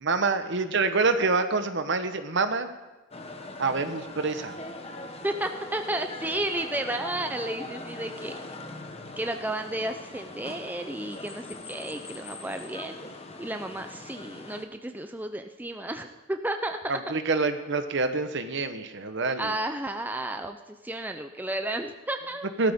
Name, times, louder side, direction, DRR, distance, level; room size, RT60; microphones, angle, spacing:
voice 1, 0.0-2.7 3.6-4.6 16.9-19.5 22.6-22.7, right 3 dB, 60° right, 9 dB, 1.0 m, -26 dB
Istanbul city soundscape, 3.1-14.6, left 2 dB, 30° left, 1.1 m, -41 dB
voice 2, 5.2-8.4 9.2-13.0 13.4-17.0 19.4-22.5, right 1 dB, 10° right, 6 dB, 0.5 m, -32 dB
16.5 x 13.0 x 3.6 m, 1.1 s
head